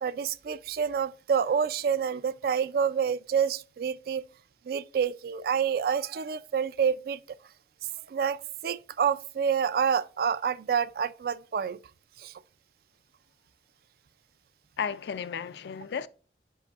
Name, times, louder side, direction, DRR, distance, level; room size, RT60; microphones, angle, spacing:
voice 1, 0.0-4.2 4.7-7.2 8.1-11.8 12.2-12.3, right 7 dB, 55° right, 0.3 m, -28 dB
voice 2, 14.8-16.1, left 7 dB, 70° left, 0.3 m, -33 dB
8.2 x 5.2 x 2.4 m
head